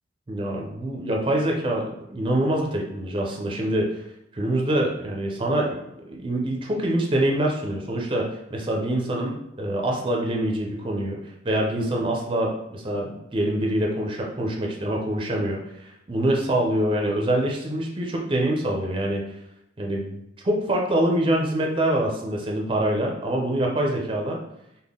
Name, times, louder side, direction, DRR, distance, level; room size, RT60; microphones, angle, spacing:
voice 1, 0.3-4.0 4.3-5.8 6.1-11.2 11.4-19.2 19.8-24.4, right 1 dB, 25° right, 0 dB, 0.5 m, -25 dB
3.6 x 2.1 x 3.6 m, 0.81 s
head